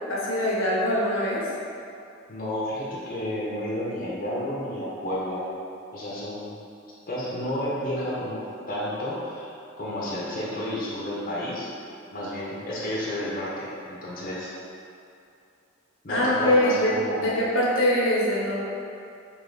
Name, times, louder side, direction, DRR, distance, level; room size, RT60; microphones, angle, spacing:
voice 1, 0.1-1.4 16.1-18.6, left 1 dB, 75° left, -5 dB, 0.8 m, -23 dB
voice 2, 2.3-5.5 5.9-6.6 7.1-8.4 8.7-9.5 9.8-11.7 12.1-14.5 16.0-17.4, left 1 dB, 45° left, -7 dB, 0.7 m, -31 dB
3.3 x 2.7 x 3.9 m, 2.5 s
head